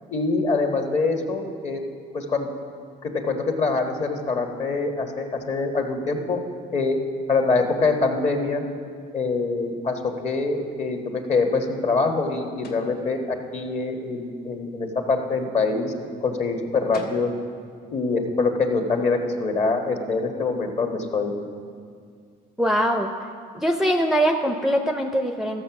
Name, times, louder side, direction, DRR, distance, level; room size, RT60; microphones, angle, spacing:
voice 1, 0.1-1.8 2.1-2.5 3.0-6.4 6.7-7.0 7.3-8.6 9.1-13.2 13.5-15.9 16.2-17.3 17.9-21.3, left 3 dB, 40° left, 3 dB, 1.4 m, -24 dB
sound 1, 12.6-12.9 16.6-16.7 16.9-17.3, left 4 dB, 65° left, 1.3 m, -40 dB
voice 2, 22.6-23.1 23.5-25.6, equal, ahead, 4 dB, 0.6 m, -22 dB
14.0 x 6.9 x 5.9 m, 2.1 s
cardioid pair, 110°, 17 cm